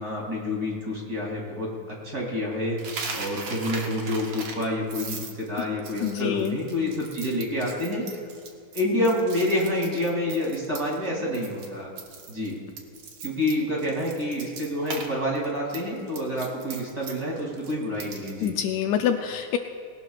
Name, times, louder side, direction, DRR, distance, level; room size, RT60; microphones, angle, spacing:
voice 1, 0.0-2.8 3.1-8.2 8.7-11.9 12.3-12.6 13.2-18.5, left 1 dB, 30° right, -3 dB, 3.2 m, -28 dB
Coin (dropping), 2.8-11.1 11.3-11.7 12.0-15.1 15.4-18.5, right 4 dB, 55° right, 2.0 m, -38 dB
voice 2, 6.0-6.6 18.4-19.6, left 9 dB, 75° left, 5 dB, 1.8 m, -26 dB
20.0 x 18.0 x 2.4 m, 2.3 s
omnidirectional pair, 3.5 m